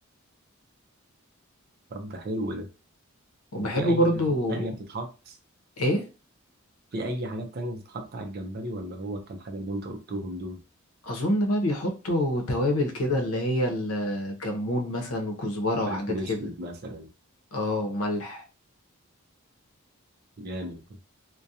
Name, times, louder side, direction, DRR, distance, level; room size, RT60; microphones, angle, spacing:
voice 1, 1.9-2.7 3.6-5.4 6.9-10.6 15.9-17.1 20.4-21.0, right 1 dB, 45° right, 5 dB, 0.4 m, -34 dB
voice 2, 3.5-4.7 5.8-6.0 11.0-16.4 17.5-18.4, equal, 80° left, 3 dB, 0.7 m, -26 dB
2.3 x 2.2 x 2.6 m, 0.32 s
head